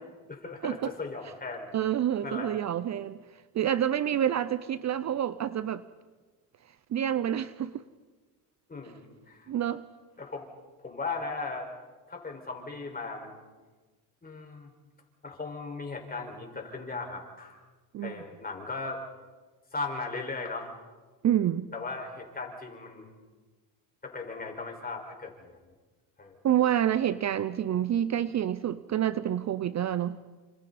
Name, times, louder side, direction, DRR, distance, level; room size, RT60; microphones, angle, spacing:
voice 1, 0.3-1.7 2.2-2.5 8.7-9.5 10.2-10.4 10.8-11.7 12.1-13.4 14.2-14.7 15.2-17.6 18.0-19.0 19.7-20.7 21.7-23.1 24.0-25.6 26.2-26.4, left 3 dB, 20° left, 5.3 m, -37 dB
voice 2, 1.7-3.2 3.5-5.8 6.9-7.8 9.5-9.8 17.9-18.2 21.2-21.7 26.4-30.2, right 10 dB, 40° right, 0.6 m, -28 dB
29.0 x 26.5 x 4.2 m
cardioid pair, 110°, 41 cm